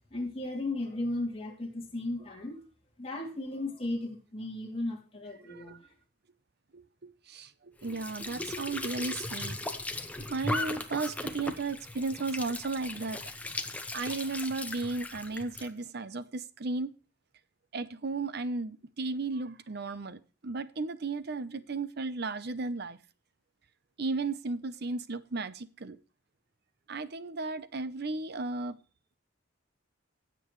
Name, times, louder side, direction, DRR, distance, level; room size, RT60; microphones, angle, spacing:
voice 1, 0.1-2.6 3.0-5.7, left 2 dB, 30° left, 2.7 m, -35 dB
voice 2, 5.4-5.8 6.7-9.6 10.3-13.2 13.9-16.9 17.7-23.0 24.0-26.0 26.9-28.8, right 3 dB, 55° right, 0.7 m, -35 dB
Squeak / Sink (filling or washing) / Trickle dribble, 7.8-15.7, left 2 dB, 5° left, 0.9 m, -37 dB
16.0 x 7.8 x 3.1 m
head